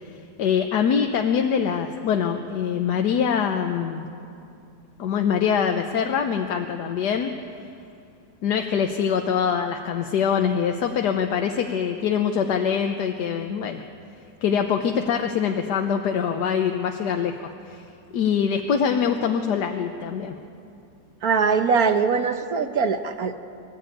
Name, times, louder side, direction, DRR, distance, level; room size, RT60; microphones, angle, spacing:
voice 1, 0.4-4.0 5.0-7.3 8.4-13.8 14.4-17.9 18.1-20.4, left 7 dB, 70° left, 5 dB, 1.4 m, -24 dB
voice 2, 21.2-23.4, right 5 dB, 60° right, 8 dB, 1.3 m, -22 dB
24.5 x 13.5 x 9.1 m, 2.6 s
omnidirectional pair, 1.9 m